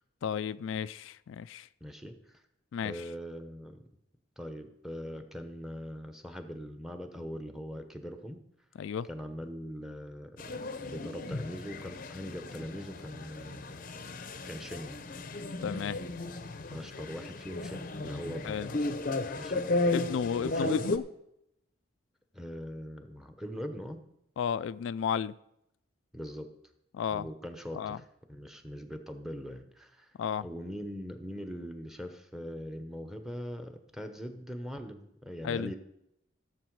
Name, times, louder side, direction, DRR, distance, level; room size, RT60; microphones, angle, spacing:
voice 1, 0.2-1.7 2.7-3.0 8.8-9.1 15.6-16.0 18.4-18.7 19.9-21.0 24.4-25.4 26.9-27.3 27.7-28.0 30.2-30.5 35.4-35.7, left 7 dB, 75° left, 0.3 m, -33 dB
voice 2, 1.8-2.4 2.8-3.8 4.4-8.4 9.1-13.7 14.5-15.0 16.7-18.7 19.3-19.9 20.4-20.9 22.3-24.0 26.1-26.5 27.1-30.1 30.4-35.8, equal, ahead, 0.9 m, -41 dB
sound 1, 10.4-21.0, left 2 dB, 40° left, 0.6 m, -35 dB
15.0 x 7.3 x 4.7 m
head